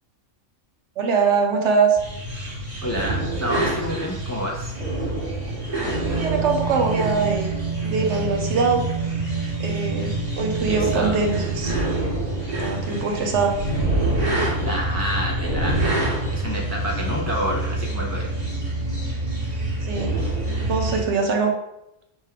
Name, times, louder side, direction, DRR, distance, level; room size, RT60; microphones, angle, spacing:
voice 1, 1.0-2.0 6.1-7.5 7.8-8.8 9.6-11.8 12.6-13.5 19.8-20.2 20.6-21.5, right 5 dB, 70° right, 3 dB, 1.0 m, -22 dB
sound 1, 2.0-21.0, right 2 dB, 35° right, 1.3 m, -26 dB
voice 2, 2.8-4.7 10.7-11.2 14.6-18.4, equal, 20° left, -2 dB, 0.4 m, -29 dB
3.5 x 3.3 x 4.5 m, 0.86 s
omnidirectional pair, 1.3 m